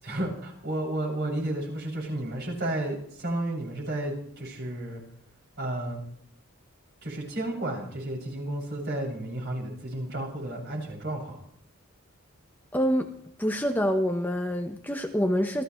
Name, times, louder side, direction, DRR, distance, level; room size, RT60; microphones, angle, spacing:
voice 1, 0.0-5.0 5.6-6.0 7.0-11.4, right 1 dB, 50° right, -2 dB, 7.2 m, -32 dB
voice 2, 12.7-13.1 13.4-15.6, equal, 10° left, 4 dB, 1.1 m, -26 dB
28.0 x 15.5 x 3.3 m, 0.66 s
head